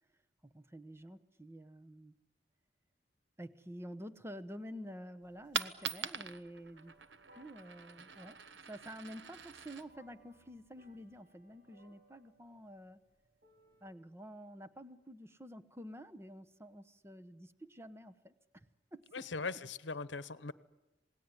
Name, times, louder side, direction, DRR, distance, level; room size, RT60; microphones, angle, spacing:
voice 1, 0.4-2.1 3.4-7.0 7.3-8.4 8.7-13.0 13.8-19.5, equal, 15° right, 12 dB, 1.1 m, -49 dB
Coin (dropping), 5.2-11.2, right 7 dB, 70° right, 1.1 m, -44 dB
sound 1, 6.7-13.9, right 1 dB, 55° right, 4.6 m, -66 dB
voice 2, 19.1-20.5, left 4 dB, 80° left, 15 dB, 1.0 m, -40 dB
27.0 x 19.0 x 9.9 m, 0.99 s
head